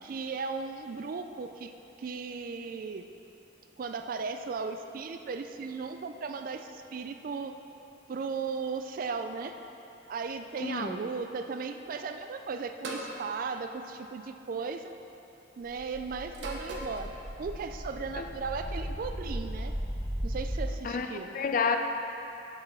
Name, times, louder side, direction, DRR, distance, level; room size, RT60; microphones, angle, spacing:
voice 1, 0.0-1.7 2.0-3.1 3.8-7.6 8.1-9.5 10.1-14.9 15.6-17.1 17.4-19.7 20.2-21.4, right 4 dB, 45° right, 7 dB, 0.3 m, -36 dB
voice 2, 10.6-11.0 18.2-18.3 20.8-21.1 21.3-21.8, left 5 dB, 45° left, 6 dB, 0.5 m, -29 dB
sound 1, 12.8-13.2 14.4-14.7 16.3-17.0, right 2 dB, 70° right, 0.9 m, -38 dB
sound 2, 15.7-20.6, equal, 70° left, 1.6 m, -37 dB
6.9 x 5.4 x 6.2 m, 3.0 s
head